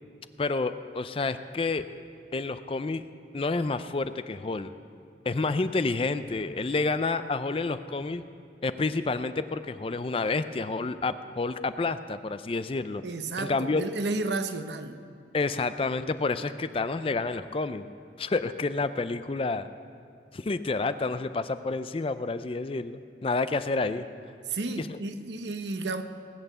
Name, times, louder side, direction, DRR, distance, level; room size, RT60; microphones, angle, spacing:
voice 1, 0.4-1.8 2.3-3.0 3.3-4.7 5.3-8.2 8.6-13.0 13.4-13.8 15.3-17.8 18.2-19.7 20.3-24.1 24.9-25.0, left 3 dB, 30° left, 12 dB, 0.4 m, -29 dB
voice 2, 13.0-15.0 24.5-26.0, right 3 dB, 80° right, 9 dB, 0.8 m, -32 dB
18.5 x 8.4 x 6.8 m, 2.4 s
head